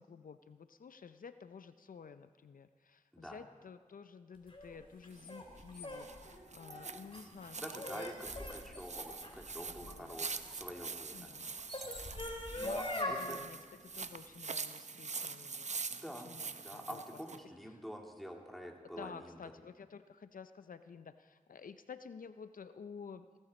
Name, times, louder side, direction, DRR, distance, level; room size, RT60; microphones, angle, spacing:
voice 1, 0.0-6.1 6.5-7.6 7.9-8.0 9.8-10.2 11.1-11.6 12.6-13.6 13.9-15.7 16.3-16.5 16.7-17.0 19.0-23.3, left 6 dB, 75° left, 11 dB, 0.5 m, -51 dB
sound 1, 4.5-10.7 11.4-13.2, left 1 dB, 40° left, 2.9 m, -42 dB
sound 2, 5.1-17.4, right 4 dB, 55° right, 0.6 m, -45 dB
voice 2, 7.6-11.3 12.3-13.4 15.9-19.4, equal, ahead, 0 dB, 2.5 m, -47 dB
17.0 x 14.0 x 4.2 m, 1.5 s
cardioid pair, 40°, 14 cm